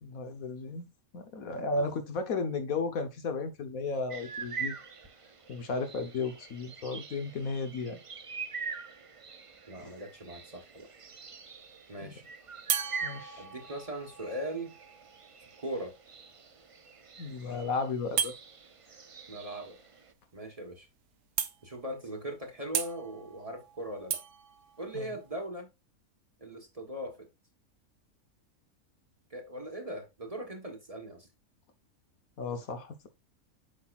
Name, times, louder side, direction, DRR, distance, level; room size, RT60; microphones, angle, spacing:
voice 1, 0.0-4.8 5.5-8.0 9.8-9.9 12.0-12.1 13.0-13.4 17.2-18.3 24.9-25.1 32.4-33.1, left 3 dB, 70° left, 1.5 m, -34 dB
sound 1, 4.1-20.1, right 5 dB, 55° right, 0.3 m, -44 dB
voice 2, 9.7-10.9 11.9-12.2 13.4-14.7 15.6-15.9 19.3-19.8 20.3-20.9 21.6-24.2 24.8-25.7 26.4-27.3 29.3-31.3, right 1 dB, 25° right, 1.3 m, -39 dB
sound 2, 9.9-10.4 12.7-16.3 18.2-18.4 20.4-20.5 20.8-20.9 21.4-21.9 22.7-25.5, right 9 dB, 80° right, 1.3 m, -37 dB
8.5 x 5.8 x 2.4 m
omnidirectional pair, 1.6 m